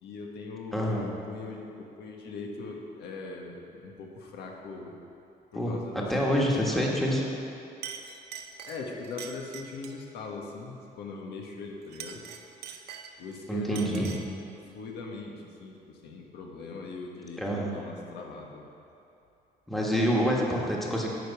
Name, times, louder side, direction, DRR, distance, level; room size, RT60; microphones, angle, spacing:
voice 1, 0.0-5.0 5.5-7.0 8.7-12.3 13.2-14.2 14.7-18.7, left 3 dB, 85° left, 0 dB, 1.5 m, -40 dB
voice 2, 0.7-1.1 5.5-7.2 13.5-14.1 17.4-17.7 19.7-21.1, equal, ahead, -3 dB, 1.4 m, -27 dB
Chink clink, 7.3-7.5 7.8-10.1 11.8-13.4 13.8-14.4, right 7 dB, 80° right, 0.8 m, -43 dB
11.0 x 5.4 x 8.2 m, 2.8 s
cardioid pair, 160°, 17 cm